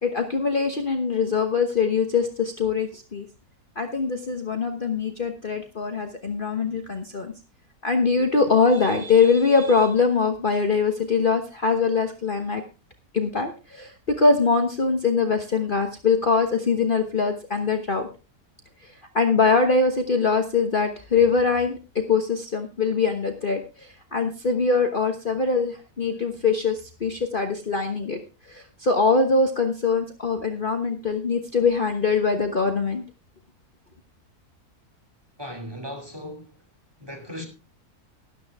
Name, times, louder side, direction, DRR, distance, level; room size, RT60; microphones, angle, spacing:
voice 1, 0.0-3.3 3.7-7.3 7.8-12.6 13.1-18.1 18.8-33.0, left 4 dB, 35° left, 1.2 m, -23 dB
voice 2, 35.4-36.6 37.0-37.5, equal, 15° right, 2.5 m, -37 dB
13.0 x 12.0 x 3.5 m
omnidirectional pair, 1.6 m